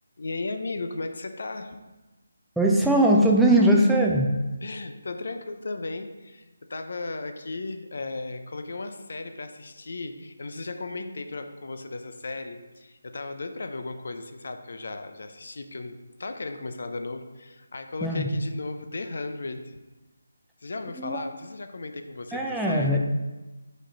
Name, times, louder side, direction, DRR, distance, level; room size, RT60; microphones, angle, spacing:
voice 1, 0.2-1.8 4.6-6.4 6.7-19.8 20.6-23.0, left 3 dB, 60° left, 7 dB, 0.5 m, -35 dB
voice 2, 2.6-4.3 18.0-18.3 21.0-21.2 22.3-23.0, right 1 dB, ahead, -2 dB, 0.5 m, -20 dB
4.9 x 4.3 x 5.1 m, 1.1 s
figure-of-eight pair, 155°, 0 cm